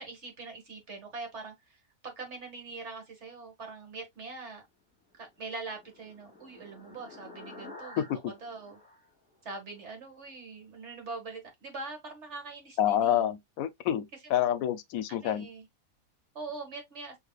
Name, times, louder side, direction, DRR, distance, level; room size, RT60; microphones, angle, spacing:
voice 1, 0.0-4.6 5.2-8.8 9.4-13.3 14.2-14.5 15.1-15.7 16.3-17.2, right 3 dB, 55° right, 1.9 m, -43 dB
sound 1, 5.2-9.9, left 2 dB, 5° left, 2.3 m, -51 dB
voice 2, 12.8-15.5, left 10 dB, 80° left, 1.0 m, -28 dB
6.5 x 3.0 x 2.3 m
omnidirectional pair, 1.5 m